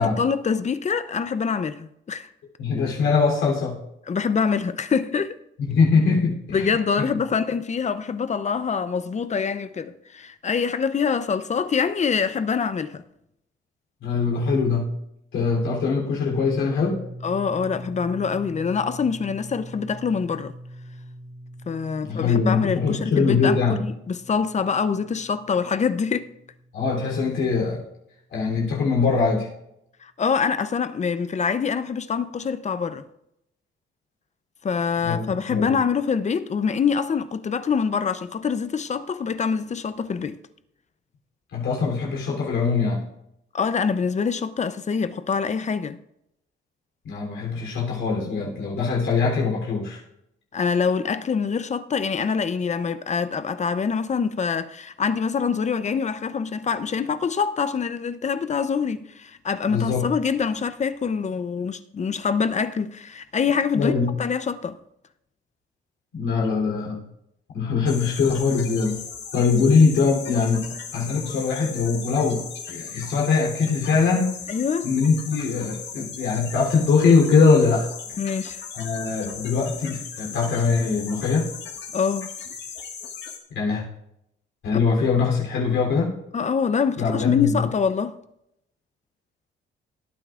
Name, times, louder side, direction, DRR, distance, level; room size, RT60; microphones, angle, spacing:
voice 1, 0.0-2.3 4.1-5.4 6.5-13.0 17.2-20.5 21.7-26.3 30.0-33.0 34.6-40.4 43.5-46.0 50.5-63.9 64.2-64.8 68.5-68.6 74.5-74.9 78.2-78.6 81.9-82.3 86.3-88.2, left 6 dB, 35° left, 0.7 m, -25 dB
voice 2, 2.6-3.8 5.6-6.7 7.0-7.2 14.0-14.9 15.3-17.0 22.1-23.8 26.7-27.8 28.3-29.5 35.0-35.8 41.5-43.0 47.0-50.0 59.7-60.0 63.7-64.1 66.1-67.0 67.5-69.0 69.3-70.6 70.9-74.3 74.8-77.9 78.7-81.5 83.5-83.8 84.6-86.1 87.0-87.7, left 5 dB, 80° left, 3.4 m, -22 dB
sound 1, 16.3-28.1, right 1 dB, 30° right, 2.3 m, -42 dB
sound 2, 67.9-83.4, left 6 dB, 60° left, 1.9 m, -37 dB
18.5 x 9.0 x 2.5 m
cardioid pair, 90°, 20 cm